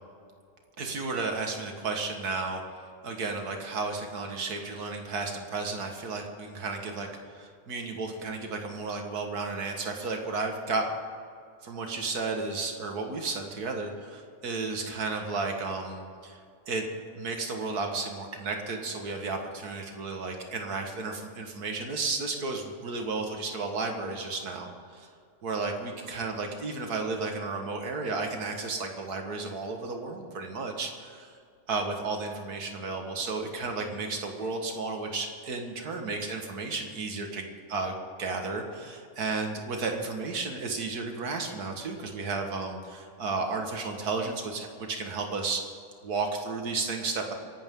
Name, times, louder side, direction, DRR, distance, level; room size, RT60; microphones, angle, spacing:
voice 1, 0.8-2.8 3.0-7.1 7.3-10.9 11.6-16.4 16.7-16.9 17.2-25.1 25.4-31.3 31.7-37.9 38.2-45.6 46.0-47.3, right 3 dB, 85° right, 3 dB, 2.2 m, -33 dB
25.0 x 11.5 x 3.8 m, 2.3 s
omnidirectional pair, 1.6 m